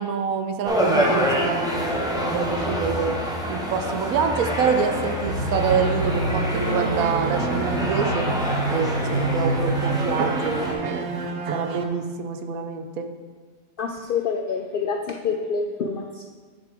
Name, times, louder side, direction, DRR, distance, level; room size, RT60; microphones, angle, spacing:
voice 1, 0.0-3.1 3.5-11.1 11.5-13.1, right 6 dB, 75° right, 6 dB, 1.1 m, -26 dB
sound 1, 0.6-10.7, equal, 5° right, 0.9 m, -27 dB
sound 2, 5.1-11.8, right 2 dB, 55° right, 0.8 m, -27 dB
voice 2, 13.8-16.3, left 5 dB, 70° left, 4 dB, 0.5 m, -27 dB
9.0 x 6.8 x 3.5 m, 1.5 s
omnidirectional pair, 1.5 m